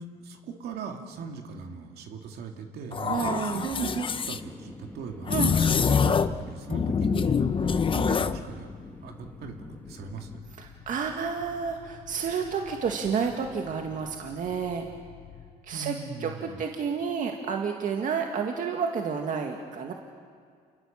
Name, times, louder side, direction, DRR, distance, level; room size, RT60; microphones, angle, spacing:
voice 1, 0.0-8.7 9.0-9.6 9.9-10.4 15.7-16.6, right 5 dB, 70° right, 3 dB, 2.7 m, -38 dB
sound 1, 2.9-4.4 5.3-6.4 6.7-8.4, left 6 dB, 30° left, 0.9 m, -25 dB
sound 2, 3.0-10.4, left 2 dB, 10° left, 1.9 m, -46 dB
voice 2, 3.1-3.7 5.3-5.5 10.6-14.9 15.6-15.9 16.2-19.9, right 6 dB, 50° right, 2 dB, 1.9 m, -30 dB
sound 3, 7.3-15.5, left 8 dB, 75° left, 2.4 m, -50 dB
29.0 x 20.5 x 7.4 m, 2.1 s
cardioid pair, 110°, 17 cm